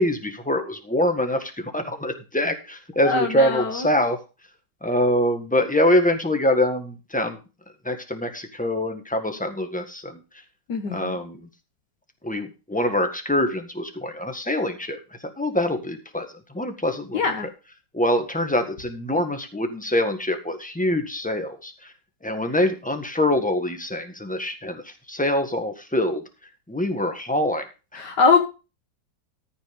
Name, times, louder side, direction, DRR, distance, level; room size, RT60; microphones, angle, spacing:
voice 1, 0.0-4.2 4.8-7.4 7.8-10.2 10.9-11.5 12.2-15.0 15.4-16.3 16.5-17.2 17.9-21.9 22.2-26.2 26.7-27.6, left 1 dB, 5° left, 6 dB, 1.4 m, -24 dB
voice 2, 3.0-3.8 10.7-11.2 17.1-17.5 28.0-28.4, left 4 dB, 70° left, 4 dB, 1.9 m, -22 dB
14.0 x 5.7 x 5.3 m, 0.31 s
omnidirectional pair, 2.0 m